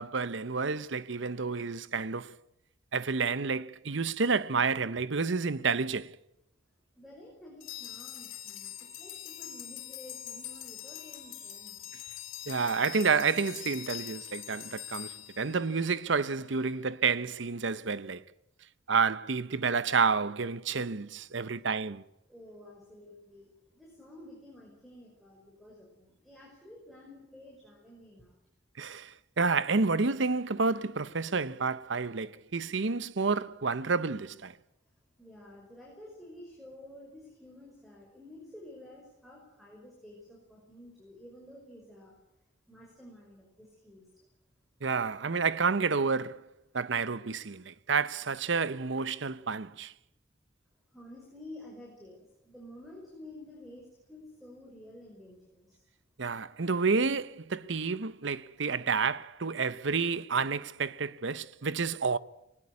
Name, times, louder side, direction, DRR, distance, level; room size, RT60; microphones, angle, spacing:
voice 1, 0.0-2.3 2.9-6.2 12.5-18.2 18.9-22.0 28.8-34.6 44.8-46.4 46.7-49.9 56.2-62.2, right 4 dB, 70° right, 0.8 m, -30 dB
voice 2, 7.0-11.8 21.5-21.6 22.3-28.4 35.2-42.1 42.7-44.1 50.9-55.8, left 1 dB, ahead, 5.5 m, -51 dB
sound 1, 7.6-16.1, left 11 dB, 90° left, 3.8 m, -43 dB
20.0 x 19.5 x 9.7 m
head